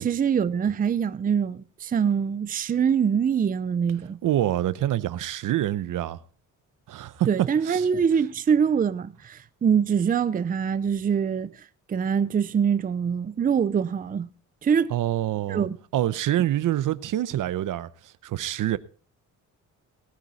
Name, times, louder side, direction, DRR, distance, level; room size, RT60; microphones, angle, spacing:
voice 1, 0.0-4.2 7.3-11.5 11.9-14.3 14.6-14.9 15.5-15.8, right 7 dB, 25° right, 0.5 m, -24 dB
voice 2, 4.2-6.2 6.9-7.9 14.9-18.8, right 13 dB, 75° right, 0.8 m, -26 dB
19.0 x 9.1 x 4.1 m
wide cardioid pair, 160°, 32 cm